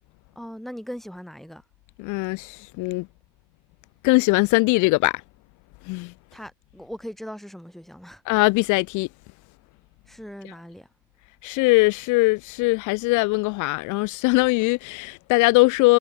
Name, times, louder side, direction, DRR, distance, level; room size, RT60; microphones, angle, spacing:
voice 1, 0.4-1.6 6.3-8.2 10.1-10.9, equal, ahead, 4.4 m, -39 dB
voice 2, 2.0-3.1 4.0-5.2 5.8-6.1 8.3-9.1 11.4-16.0, left 25 dB, 65° left, 0.5 m, -21 dB
cardioid pair, 110°, 33 cm